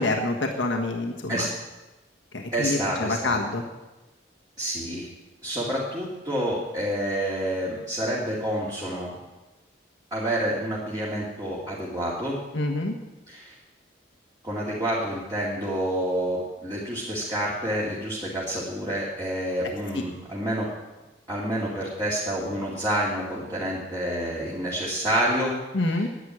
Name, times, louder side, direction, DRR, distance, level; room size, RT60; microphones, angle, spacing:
voice 1, 0.0-1.5 2.3-3.6 12.5-12.9 19.9-20.0 25.7-26.1, left 2 dB, 85° left, 2 dB, 1.5 m, -26 dB
voice 2, 2.5-3.4 4.6-5.1 5.4-9.2 10.1-12.4 13.3-13.5 14.4-20.7 21.3-25.6 25.9-26.1, right 1 dB, 20° right, -7 dB, 2.5 m, -28 dB
11.0 x 9.4 x 9.8 m, 1.1 s
head